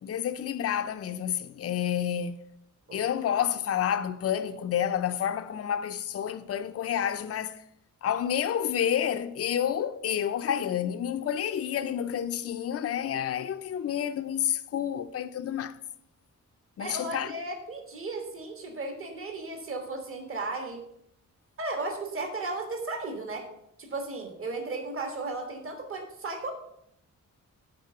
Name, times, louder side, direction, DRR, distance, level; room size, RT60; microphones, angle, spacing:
voice 1, 0.0-2.4 2.9-7.6 8.0-15.8 16.8-17.3, left 9 dB, 50° left, 0.5 m, -29 dB
voice 2, 16.8-20.8 21.6-23.5 23.8-26.5, right 2 dB, 45° right, 1.4 m, -35 dB
9.6 x 4.2 x 6.6 m
wide cardioid pair, 160°, 31 cm